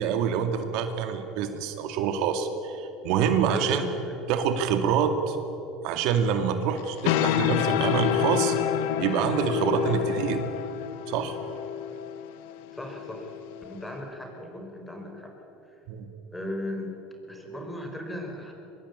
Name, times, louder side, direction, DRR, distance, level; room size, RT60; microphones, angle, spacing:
voice 1, 0.0-3.8 4.3-5.4 5.8-8.6 9.0-10.4 11.1-11.4 15.9-16.1, right 7 dB, 65° right, 7 dB, 2.3 m, -26 dB
voice 2, 3.5-4.2 9.8-10.1 12.7-13.3 13.7-15.4 16.3-17.0 17.3-18.5, left 1 dB, 5° left, 3 dB, 5.3 m, -36 dB
sound 1, 6.8-13.9, left 10 dB, 75° left, 1.4 m, -28 dB
24.0 x 21.0 x 9.8 m, 2.9 s
supercardioid pair, 115°, 0 cm